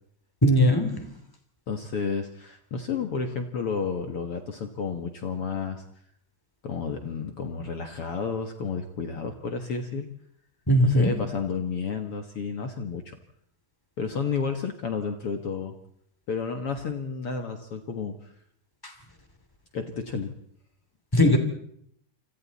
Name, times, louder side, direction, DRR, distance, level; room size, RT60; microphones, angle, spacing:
voice 1, 0.4-1.1 10.7-11.1 18.8-18.9 21.1-21.4, equal, 5° left, 6 dB, 1.7 m, -20 dB
voice 2, 1.7-5.8 6.6-10.1 11.0-13.1 14.0-15.7 16.3-18.3 19.7-20.3 21.2-21.4, left 5 dB, 75° left, 6 dB, 1.3 m, -31 dB
28.5 x 25.5 x 4.2 m, 0.69 s
omnidirectional pair, 5.0 m